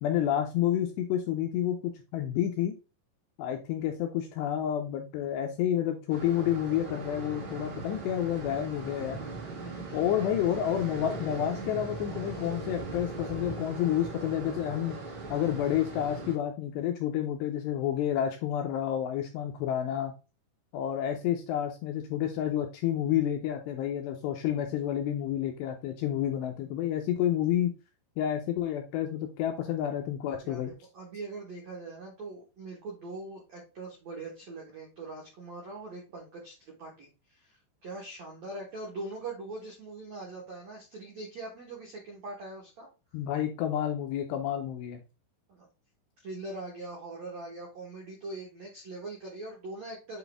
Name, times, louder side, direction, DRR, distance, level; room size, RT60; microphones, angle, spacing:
voice 1, 0.0-2.8 3.4-9.2 9.9-15.0 15.3-20.1 20.7-27.7 28.2-30.7 43.1-45.0, left 10 dB, 80° left, 4 dB, 2.5 m, -29 dB
sound 1, 6.1-16.4, right 3 dB, 35° right, 2.3 m, -39 dB
voice 2, 9.6-10.4 30.4-42.9 45.5-45.7 46.2-50.2, right 2 dB, 85° right, -2 dB, 1.5 m, -42 dB
7.6 x 4.1 x 3.4 m, 0.31 s
omnidirectional pair, 5.5 m